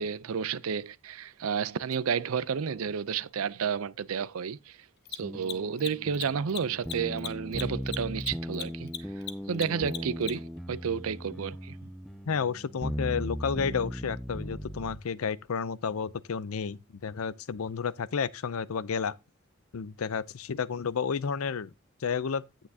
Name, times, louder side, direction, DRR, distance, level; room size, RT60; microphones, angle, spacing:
voice 1, 0.0-4.8 5.1-8.9 9.5-11.8, right 6 dB, 85° right, 0.5 m, -31 dB
Mechanisms, 1.9-2.0 5.0-10.6, left 9 dB, 50° left, 0.9 m, -38 dB
sound 1, 5.2-15.0, equal, ahead, 0.4 m, -38 dB
voice 2, 12.3-19.1 19.7-21.7 22.0-22.4, left 6 dB, 85° left, 0.5 m, -31 dB
9.5 x 9.0 x 2.7 m
head